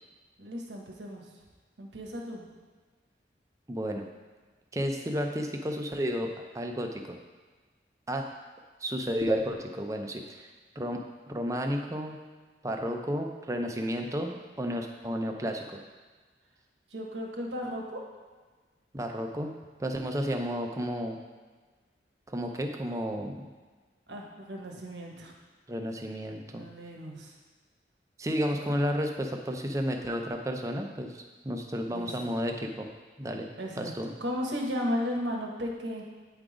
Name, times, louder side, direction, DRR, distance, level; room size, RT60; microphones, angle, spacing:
voice 1, 0.4-1.3 1.8-2.4 16.9-18.0 24.1-25.3 26.5-27.3 28.5-28.8 31.9-32.1 33.6-33.9 34.2-36.0, equal, 80° right, 0 dB, 1.2 m, -35 dB
voice 2, 3.7-4.1 4.7-7.2 8.1-8.3 8.8-10.5 10.8-11.0 11.3-12.2 12.6-15.8 18.9-19.5 19.8-21.2 22.3-23.5 25.7-26.6 28.2-32.9 33.2-33.5 33.8-34.1, equal, 15° right, 3 dB, 0.5 m, -32 dB
8.8 x 3.8 x 4.9 m, 1.4 s
head